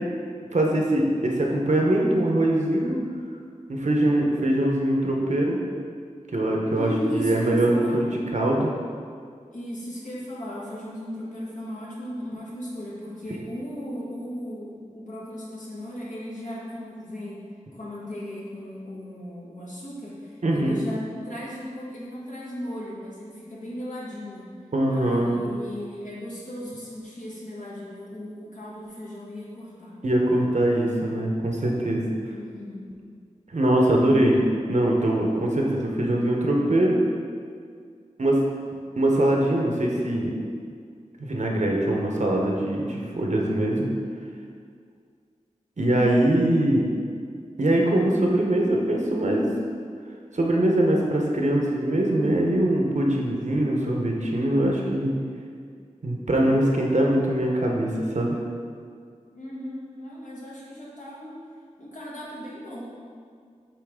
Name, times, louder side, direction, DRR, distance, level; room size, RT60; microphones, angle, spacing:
voice 1, 0.5-3.0 3.7-5.6 6.3-8.7 20.4-20.8 24.7-25.4 30.0-32.1 33.5-34.4 34.7-37.0 38.2-38.4 39.0-40.3 41.2-43.9 45.8-46.8 47.6-49.5 50.3-55.1 56.0-58.4, right 1 dB, 70° right, -1 dB, 0.9 m, -22 dB
voice 2, 6.7-8.0 9.5-17.4 17.7-24.5 24.9-29.9 32.3-32.9 59.3-61.4 61.8-62.8, equal, 90° left, -6 dB, 1.4 m, -36 dB
8.3 x 3.2 x 3.6 m, 2.1 s
wide cardioid pair, 55°, 13 cm